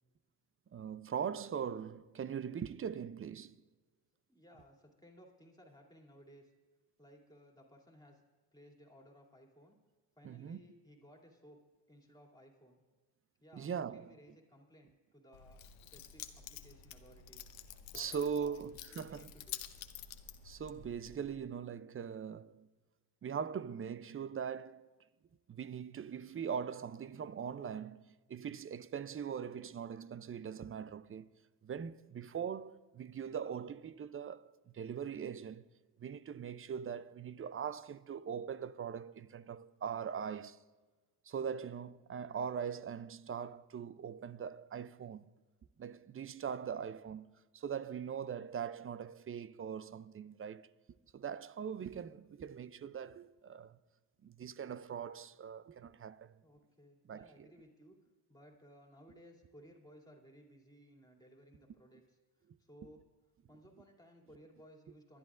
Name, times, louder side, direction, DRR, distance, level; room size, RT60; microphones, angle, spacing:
voice 1, 0.7-3.6 10.2-10.6 13.5-14.1 17.9-19.3 20.4-22.7 23.2-24.9 25.5-31.3 31.6-35.7 36.0-40.6 41.2-45.3 45.8-50.7 51.1-53.8 54.2-56.3 57.1-57.5, right 7 dB, 30° right, 0.5 m, -41 dB
voice 2, 4.3-6.5 7.0-8.2 8.5-9.8 10.2-11.6 11.9-12.8 13.4-15.6 15.9-17.5 17.9-18.6 18.9-19.6 56.4-58.0 58.3-63.0 63.5-65.2, equal, 10° left, 2.8 m, -60 dB
Keys jangling, 15.3-21.3, left 10 dB, 70° left, 0.9 m, -49 dB
25.0 x 11.0 x 2.5 m
supercardioid pair, 60°, 49 cm